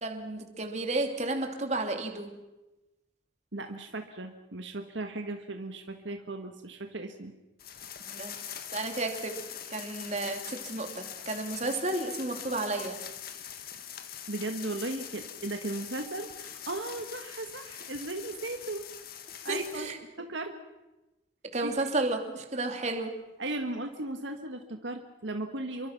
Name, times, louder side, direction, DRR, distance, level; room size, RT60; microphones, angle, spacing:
voice 1, 0.0-2.3 8.1-8.3 8.7-9.4 9.7-13.0 19.5-20.0 21.5-23.2, right 2 dB, 35° right, 4 dB, 2.8 m, -32 dB
voice 2, 3.5-7.3 14.3-18.8 19.4-19.9 20.2-20.5 21.6-21.7 23.4-25.9, right 2 dB, 70° right, 5 dB, 1.7 m, -36 dB
sound 1, 7.6-20.0, left 9 dB, 50° left, 1.8 m, -43 dB
28.0 x 23.5 x 6.0 m, 1.0 s
head